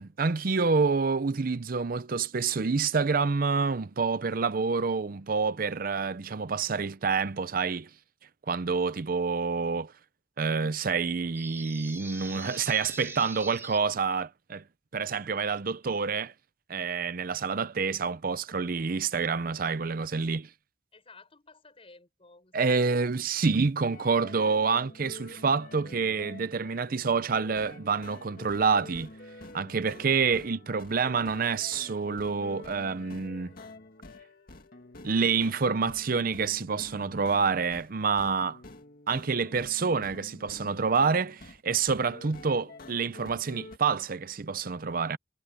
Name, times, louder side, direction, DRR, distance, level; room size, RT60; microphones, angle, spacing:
voice 1, 0.0-7.9 8.5-9.9 10.4-14.6 14.9-16.3 16.7-20.5 22.5-29.1 29.5-33.5 35.0-38.6 39.1-45.2, right 5 dB, 50° right, 0.6 m, -28 dB
sound 1, 11.3-13.8, right 3 dB, 15° right, 3.1 m, -42 dB
voice 2, 20.9-22.9, left 3 dB, 35° left, 5.9 m, -55 dB
sound 2, 23.9-37.9 38.2-41.6 41.9-43.8, left 2 dB, 55° left, 2.4 m, -48 dB
head